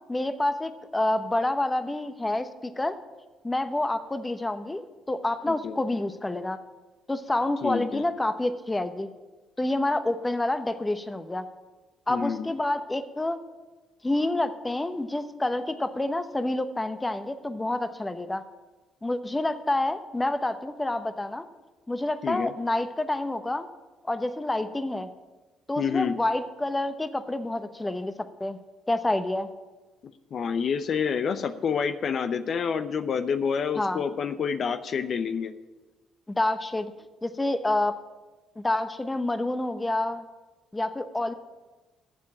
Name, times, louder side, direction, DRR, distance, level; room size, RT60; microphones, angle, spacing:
voice 1, 0.1-3.0 3.4-6.6 7.1-9.1 9.6-11.5 12.1-13.4 14.0-18.4 19.0-21.4 21.9-23.7 24.1-25.1 25.7-28.1 28.4-28.6 28.9-29.5 33.8-34.0 36.3-36.9 37.2-38.0 38.6-40.2 40.7-41.3, left 2 dB, 15° left, 10 dB, 0.9 m, -28 dB
voice 2, 5.5-5.8 7.6-8.1 12.1-12.5 22.2-22.5 25.8-26.2 30.0-35.5, left 6 dB, 55° left, 11 dB, 0.7 m, -28 dB
11.0 x 7.5 x 8.7 m, 1.2 s
hypercardioid pair, 55°, 0 cm